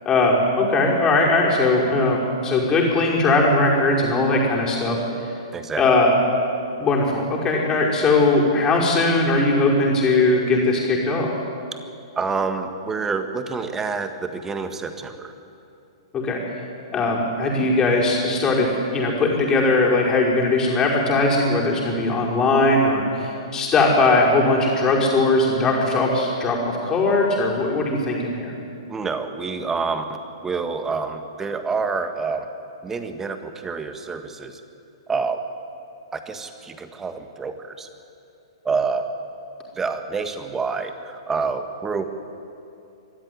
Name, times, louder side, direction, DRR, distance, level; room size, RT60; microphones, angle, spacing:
voice 1, 0.1-5.3 5.8-6.2 6.8-11.3 16.1-16.4 16.9-28.5, left 2 dB, 20° left, -3 dB, 5.4 m, -19 dB
voice 2, 5.5-5.9 12.1-15.3 28.9-32.5 32.8-34.6 35.1-35.4 36.1-37.9 38.6-39.1 39.7-42.0, right 4 dB, 15° right, 8 dB, 1.7 m, -27 dB
24.0 x 13.5 x 9.7 m, 2.6 s
figure-of-eight pair, 115°, 3 cm